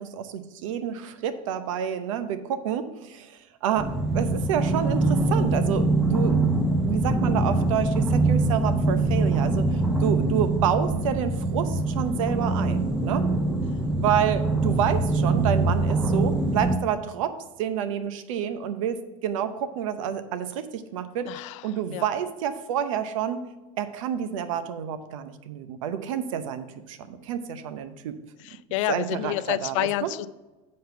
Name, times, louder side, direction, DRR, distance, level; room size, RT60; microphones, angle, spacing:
voice 1, 0.0-6.4 6.8-13.3 14.0-21.3 21.6-23.4 23.8-28.2 28.9-30.1, right 9 dB, 85° right, 10 dB, 0.8 m, -29 dB
sound 1, 3.8-16.8, right 2 dB, 5° right, 0.8 m, -23 dB
voice 2, 21.2-22.1 28.4-30.3, left 15 dB, 75° left, 16 dB, 0.4 m, -29 dB
7.7 x 5.3 x 5.6 m, 1.1 s
supercardioid pair, 95°, 16 cm